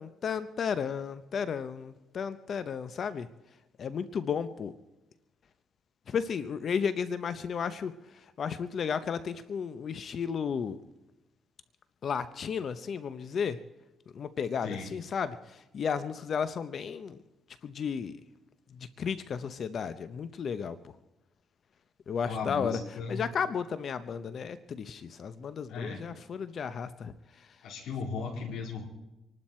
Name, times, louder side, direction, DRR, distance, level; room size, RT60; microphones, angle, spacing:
voice 1, 0.0-3.3 3.8-4.7 6.1-7.9 8.4-10.8 12.0-13.6 14.1-17.2 17.6-18.2 18.8-20.8 22.1-22.8 23.1-27.1, left 6 dB, 55° left, 13 dB, 0.8 m, -33 dB
voice 2, 22.2-23.2 25.7-26.1 27.6-28.8, left 5 dB, 80° left, -1 dB, 3.8 m, -36 dB
26.0 x 12.0 x 4.4 m, 0.98 s
cardioid pair, 90°, 0 cm